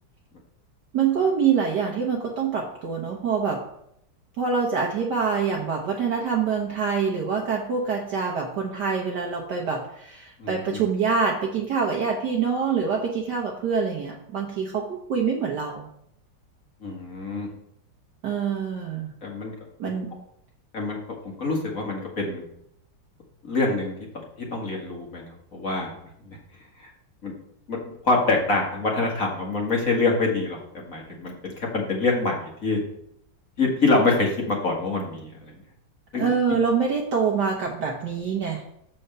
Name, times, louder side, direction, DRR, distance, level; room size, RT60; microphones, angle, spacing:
voice 1, 0.9-3.6 4.4-15.9 18.2-19.1 19.8-20.2 36.1-38.6, right 6 dB, 60° right, -1 dB, 1.4 m, -25 dB
voice 2, 10.4-10.8 16.8-17.5 19.2-19.5 19.8-19.9 20.7-21.0 21.4-22.4 23.4-23.9 24.4-25.9 26.3-26.4 27.2-27.3 27.7-27.8 28.0-32.8 33.6-35.3 36.1-36.3, left 3 dB, 40° left, -1 dB, 1.9 m, -25 dB
7.0 x 4.5 x 6.6 m, 0.73 s
omnidirectional pair, 2.3 m